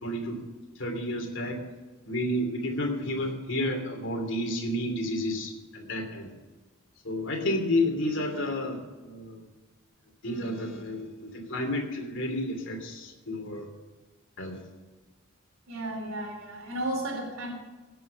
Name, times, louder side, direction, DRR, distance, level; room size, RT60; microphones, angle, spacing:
voice 1, 0.0-0.4 0.8-1.6 2.0-6.3 7.0-9.4 10.2-13.7 14.4-14.6, left 1 dB, 60° left, 2 dB, 2.9 m, -31 dB
voice 2, 15.7-17.5, right 1 dB, 80° right, 2 dB, 3.6 m, -33 dB
17.0 x 7.7 x 6.8 m, 1.2 s
head